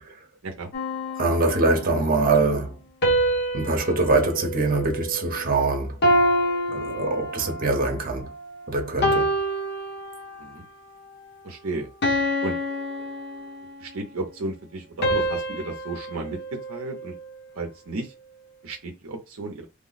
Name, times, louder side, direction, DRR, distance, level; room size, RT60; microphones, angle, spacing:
sound 1, 0.7-2.0 3.0-5.5 6.0-7.7 8.3-8.5 9.0-10.6 11.0-11.3 12.0-13.9 15.0-17.4, equal, 50° left, 0.9 m, -27 dB
voice 1, 1.2-2.8 3.5-6.0 6.7-8.3 8.7-9.3, right 3 dB, 40° right, 0.9 m, -23 dB
voice 2, 11.4-11.9 12.4-12.6 13.8-16.4 16.7-17.1 17.6-18.1 18.6-19.6, right 3 dB, 65° right, 0.6 m, -33 dB
3.2 x 2.0 x 3.9 m
head